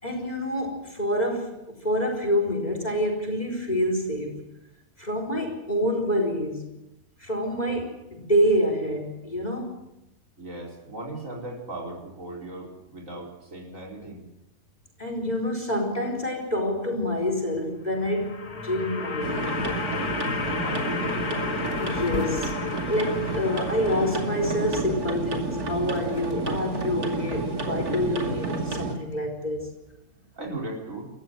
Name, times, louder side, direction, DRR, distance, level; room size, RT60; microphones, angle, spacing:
voice 1, 0.0-4.5 5.0-6.7 7.2-9.8 15.0-19.5 21.8-22.6 22.9-29.7, equal, 25° left, 3 dB, 4.6 m, -27 dB
voice 2, 10.4-14.2 20.3-20.9 30.3-31.1, right 2 dB, 55° right, -1 dB, 5.0 m, -37 dB
sound 1, 17.8-25.0, left 5 dB, 75° left, 2.4 m, -33 dB
sound 2, 19.2-29.0, right 2 dB, 80° right, 3.0 m, -30 dB
sound 3, 21.2-21.3 21.6-24.3 24.8-27.4, left 5 dB, 60° left, 1.9 m, -40 dB
28.5 x 14.5 x 7.7 m, 0.93 s
omnidirectional pair, 1.6 m